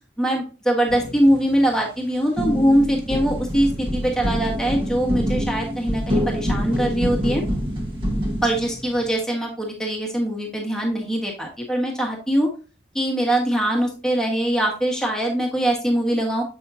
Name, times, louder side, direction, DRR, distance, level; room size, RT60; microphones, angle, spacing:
voice 1, 0.2-7.4 8.4-12.5 12.9-16.4, right 1 dB, 5° left, -1 dB, 1.3 m, -22 dB
sound 1, 0.9-2.0 2.4-9.2, equal, 30° right, 1.3 m, -26 dB
7.2 x 5.5 x 2.7 m, 0.35 s
head